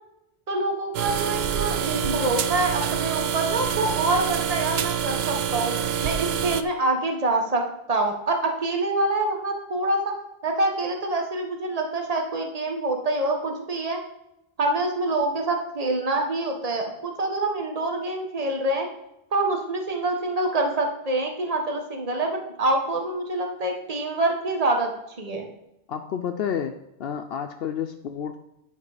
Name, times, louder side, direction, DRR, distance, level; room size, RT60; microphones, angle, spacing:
voice 1, 0.5-5.7 6.0-7.6 7.9-10.1 10.4-14.0 14.6-18.9 19.3-24.9 25.2-25.5, right 2 dB, 40° right, 3 dB, 1.3 m, -26 dB
sound 1, 0.9-6.6, right 8 dB, 80° right, 0.8 m, -26 dB
voice 2, 25.9-26.7 27.0-28.4, left 8 dB, 75° left, 6 dB, 0.8 m, -30 dB
9.5 x 5.2 x 4.9 m, 0.86 s
omnidirectional pair, 1.0 m